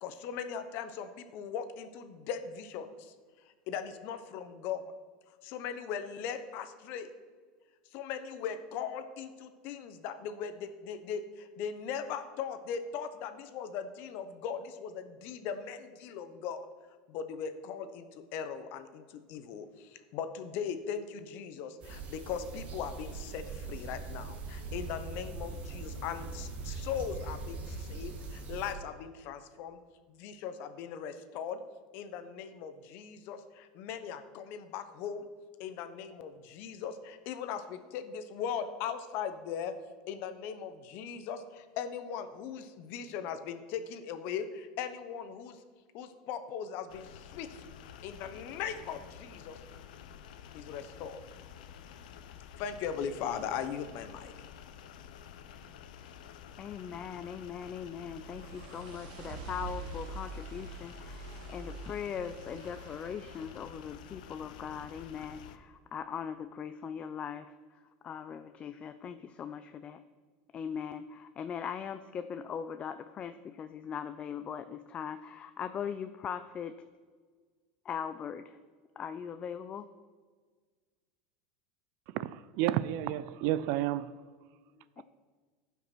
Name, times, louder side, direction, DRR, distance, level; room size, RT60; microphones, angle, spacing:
voice 1, 0.0-3.1 3.7-4.8 5.4-7.1 7.9-16.7 17.1-29.8 30.1-31.6 31.9-35.3 35.6-39.7 40.1-45.6 45.9-47.6 48.0-49.6 50.5-51.2 52.6-54.3, left 7 dB, 55° left, 1.0 m, -39 dB
sound 1, 21.8-28.7, right 3 dB, 35° right, 1.9 m, -41 dB
sound 2, 46.9-65.6, left 8 dB, 90° left, 0.8 m, -50 dB
voice 2, 56.6-67.5 68.0-70.0 70.5-76.8 77.8-78.6 79.0-79.9 85.0-85.1, left 7 dB, 25° left, 0.4 m, -40 dB
sound 3, 57.7-63.7, right 3 dB, 75° right, 1.3 m, -45 dB
voice 3, 82.1-84.1, right 13 dB, 55° right, 0.5 m, -31 dB
14.5 x 5.8 x 6.1 m
supercardioid pair, 145°, 4 cm